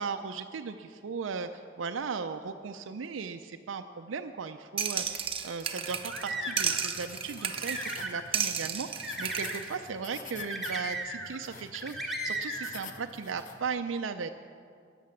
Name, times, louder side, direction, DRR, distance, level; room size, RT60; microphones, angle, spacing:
voice 1, 0.0-14.3, right 5 dB, 85° right, 7 dB, 0.5 m, -37 dB
sound 1, 4.8-6.3 6.6-8.0 8.3-9.7, right 7 dB, 30° right, 0.8 m, -33 dB
sound 2, 5.8-13.7, left 5 dB, 45° left, 0.8 m, -49 dB
sound 3, 5.9-6.9 7.4-8.3 9.0-9.6 10.4-11.4 11.7-12.7, right 1 dB, ahead, 1.4 m, -35 dB
14.0 x 9.4 x 7.1 m, 2.2 s
head